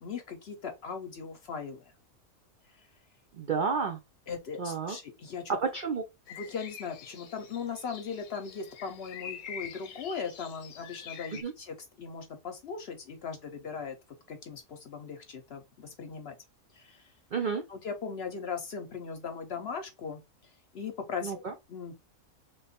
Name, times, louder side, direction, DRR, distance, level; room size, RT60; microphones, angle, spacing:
voice 1, 0.0-1.9 4.3-5.6 6.3-14.0 14.3-16.4 16.7-17.0 17.7-20.2 20.7-21.4 21.7-21.9, left 5 dB, 55° left, 0.8 m, -39 dB
voice 2, 3.4-4.0 4.6-5.0 5.7-6.0 11.3-11.5 17.3-17.6 21.2-21.5, right 5 dB, 65° right, 0.5 m, -31 dB
sound 1, 6.3-11.4, left 8 dB, 80° left, 1.1 m, -45 dB
3.2 x 2.3 x 4.2 m
omnidirectional pair, 1.5 m